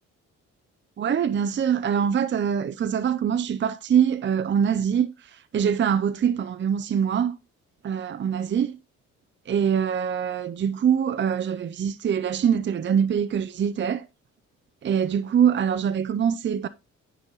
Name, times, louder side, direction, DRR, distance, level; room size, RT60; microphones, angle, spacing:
voice 1, 1.0-5.1 5.5-7.3 7.8-8.8 9.5-14.0 14.8-16.7, right 8 dB, 40° right, 0.6 m, -24 dB
10.0 x 5.6 x 4.0 m
cardioid pair, 90°, 30 cm